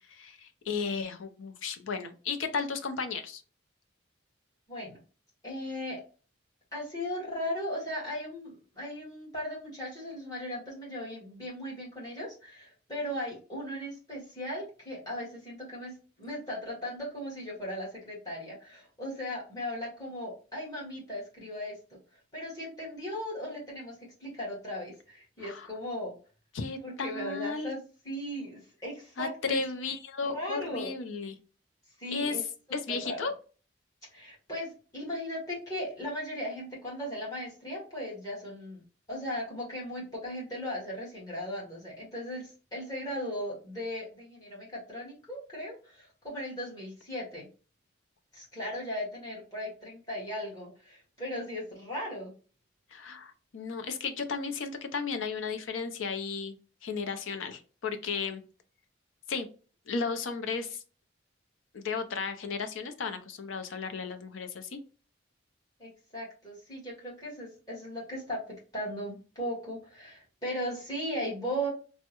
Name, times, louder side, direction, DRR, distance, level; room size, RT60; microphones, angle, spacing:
voice 1, 0.1-3.4 25.4-25.7 26.5-27.7 29.2-31.4 32.1-32.4 32.7-33.3 52.9-56.6 56.8-58.4 59.3-59.5 59.9-60.8 61.7-64.8, left 5 dB, 85° left, 8 dB, 0.5 m, -34 dB
voice 2, 4.7-5.0 5.4-6.0 6.7-21.8 22.1-26.1 26.8-27.8 28.0-29.6 30.2-30.9 32.0-32.4 32.7-33.3 34.1-38.8 39.1-47.5 48.3-52.3 65.8-68.4 68.7-71.7, equal, 20° left, -5 dB, 1.5 m, -37 dB
3.4 x 2.1 x 2.9 m, 0.36 s
head